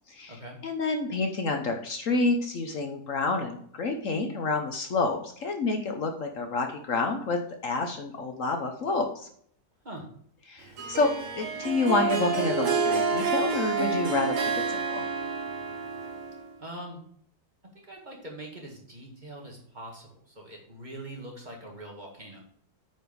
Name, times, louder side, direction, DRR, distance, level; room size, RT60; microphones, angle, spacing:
voice 1, 0.6-9.3 10.5-11.1 11.4-14.4 14.7-15.0, left 3 dB, 55° left, 5 dB, 1.2 m, -28 dB
Harp, 10.8-16.6, right 5 dB, 60° right, 1.3 m, -29 dB
voice 2, 16.6-17.0 17.9-22.4, right 1 dB, 30° right, 0 dB, 2.0 m, -42 dB
8.9 x 5.0 x 5.2 m, 0.63 s
omnidirectional pair, 1.7 m